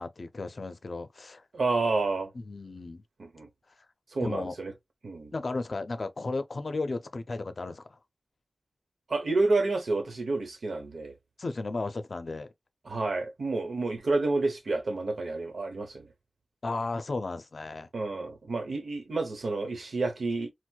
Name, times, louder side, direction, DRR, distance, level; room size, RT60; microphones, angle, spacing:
voice 1, 0.0-1.4 2.3-3.0 4.2-4.5 5.3-8.0 11.4-12.5 16.6-17.9, left 3 dB, 60° left, 0.5 m, -34 dB
voice 2, 1.5-2.3 3.2-3.5 4.1-4.7 5.0-5.3 9.1-11.2 12.8-16.1 17.9-20.5, right 3 dB, 80° right, 0.9 m, -29 dB
4.4 x 2.0 x 2.3 m
wide cardioid pair, 70°, 0 cm